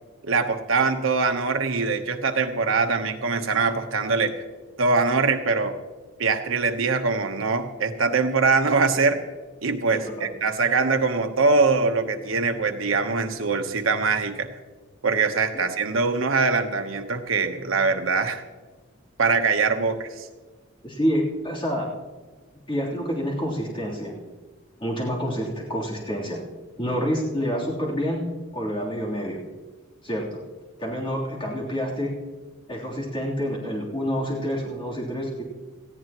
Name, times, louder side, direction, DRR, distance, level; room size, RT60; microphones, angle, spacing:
voice 1, 0.2-4.4 4.8-5.8 6.2-9.2 9.6-14.5 15.0-18.4 19.2-20.3, right 4 dB, 85° right, 6 dB, 1.1 m, -23 dB
voice 2, 9.9-10.3 15.5-15.6 20.8-21.9 22.7-24.1 24.8-26.4 26.8-28.3 28.5-29.4 30.0-30.4 30.8-32.1 32.7-35.4, equal, 25° left, -5 dB, 3.3 m, -28 dB
18.5 x 14.5 x 3.0 m, 1.3 s
head